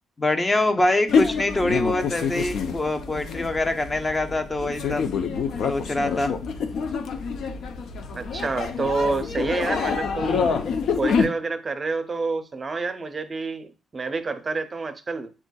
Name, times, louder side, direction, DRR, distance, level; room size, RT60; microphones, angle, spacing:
voice 1, 0.2-5.0 5.6-6.3, left 2 dB, 25° left, 0.7 m, -24 dB
sound 1, 1.1-11.3, left 5 dB, 70° left, 0.5 m, -27 dB
voice 2, 8.2-10.4 11.0-15.3, right 3 dB, 30° right, 0.5 m, -28 dB
7.3 x 2.5 x 2.2 m
cardioid pair, 90°, 0 cm